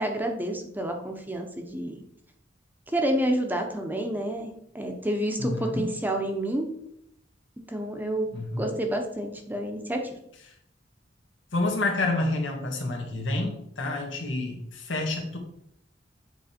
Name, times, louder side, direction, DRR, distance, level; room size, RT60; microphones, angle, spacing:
voice 1, 0.0-2.0 2.9-6.7 7.7-8.3 8.6-10.1, right 1 dB, 10° right, 3 dB, 0.7 m, -29 dB
voice 2, 5.4-5.9 8.3-8.7 11.5-15.4, left 2 dB, 90° left, 1 dB, 1.5 m, -29 dB
7.6 x 3.2 x 4.3 m, 0.73 s
head